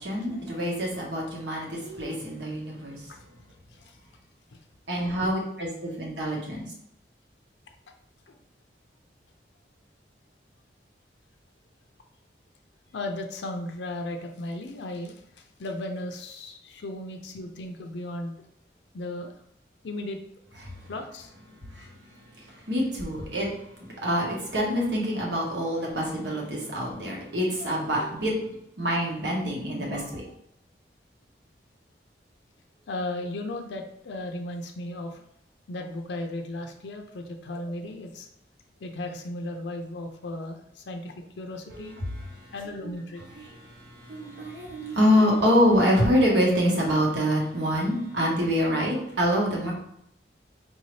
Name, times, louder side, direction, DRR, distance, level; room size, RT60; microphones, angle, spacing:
voice 1, 0.0-3.1 4.9-6.6 20.6-20.9 21.7-21.9 22.4-23.5 23.8-28.3 28.8-30.3 41.7-42.5 42.8-42.9 43.3-49.7, equal, 80° right, -2 dB, 1.2 m, -26 dB
voice 2, 12.9-18.3 18.9-19.3 19.8-20.2 20.9-21.3 28.0-28.1 32.9-35.2 35.7-38.3 38.8-42.0 42.5-43.2, left 1 dB, 80° left, 4 dB, 0.5 m, -35 dB
4.6 x 2.7 x 3.1 m, 0.76 s
head